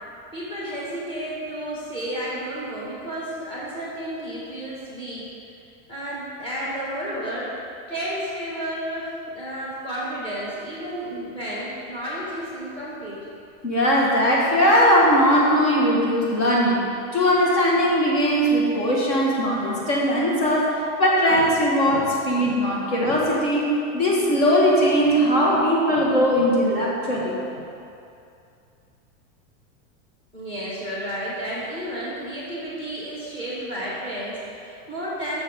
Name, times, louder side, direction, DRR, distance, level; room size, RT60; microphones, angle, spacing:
voice 1, 0.3-5.2 5.9-7.5 7.9-13.2 30.3-35.4, equal, 15° left, -8 dB, 1.9 m, -32 dB
voice 2, 13.6-16.8 17.1-20.7 21.0-27.6, equal, 50° left, -4 dB, 1.9 m, -20 dB
14.0 x 6.8 x 3.8 m, 2.6 s
supercardioid pair, 180°, 38 cm